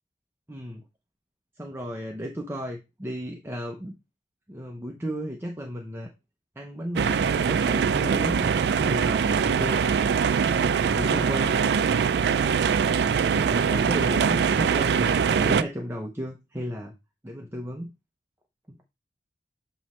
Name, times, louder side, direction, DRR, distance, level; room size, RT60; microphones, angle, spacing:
voice 1, 0.5-0.8 1.6-3.9 4.5-6.1 6.6-9.9 10.4-11.6 13.3-16.9 17.2-17.9 18.7-18.8, equal, 15° right, 2 dB, 0.6 m, -34 dB
sound 1, 7.0-15.6, right 6 dB, 65° right, 0.3 m, -23 dB
7.7 x 3.0 x 4.3 m, 0.24 s
head